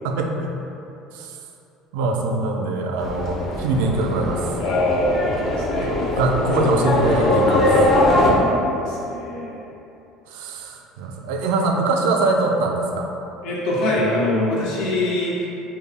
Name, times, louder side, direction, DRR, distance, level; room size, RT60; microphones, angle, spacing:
voice 1, 0.0-0.5 1.1-1.3 1.9-4.5 5.8-7.7 10.3-13.1, right 3 dB, 85° right, 2 dB, 0.3 m, -23 dB
Livestock farm animals working animals, 3.0-8.3, left 1 dB, 30° left, 0.7 m, -21 dB
voice 2, 4.6-6.3 8.0-9.6 13.4-15.5, left 1 dB, 75° left, -5 dB, 0.8 m, -24 dB
3.3 x 2.2 x 3.6 m, 2.8 s
cardioid pair, 130°, 0 cm